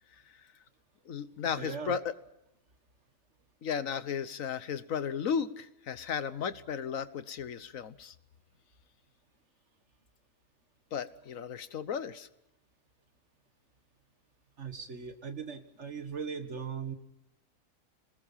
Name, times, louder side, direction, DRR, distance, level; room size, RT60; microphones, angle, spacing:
voice 1, 1.1-2.1 3.6-8.1 10.9-12.3, left 7 dB, 70° left, 14 dB, 1.4 m, -35 dB
voice 2, 1.6-2.0 14.6-16.9, right 6 dB, 55° right, 8 dB, 1.9 m, -39 dB
27.0 x 20.5 x 5.7 m, 0.86 s
omnidirectional pair, 1.5 m